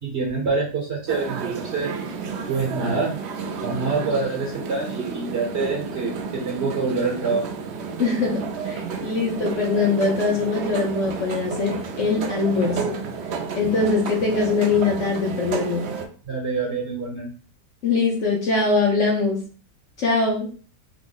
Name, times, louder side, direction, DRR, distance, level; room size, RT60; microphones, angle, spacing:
voice 1, 0.0-1.9 2.5-3.1 3.6-7.5 16.3-17.3, right 4 dB, 50° right, -1 dB, 0.9 m, -26 dB
sound 1, 1.1-16.1, right 5 dB, 85° right, 0.5 m, -31 dB
voice 2, 8.0-13.0 13.6-15.8 17.8-19.4 20.0-20.5, left 4 dB, 55° left, -2 dB, 1.0 m, -22 dB
3.6 x 2.0 x 3.8 m, 0.40 s
omnidirectional pair, 1.8 m